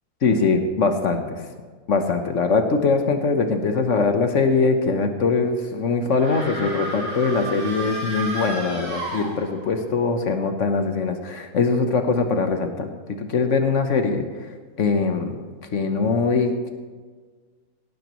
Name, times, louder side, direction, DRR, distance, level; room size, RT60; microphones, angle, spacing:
voice 1, 0.2-1.4 1.9-14.5 14.8-15.4 15.7-16.7, left 4 dB, 50° left, 6 dB, 1.1 m, -22 dB
sound 1, 6.1-9.8, right 2 dB, 65° right, 3.7 m, -32 dB
17.0 x 12.0 x 3.1 m, 1.5 s
omnidirectional pair, 1.9 m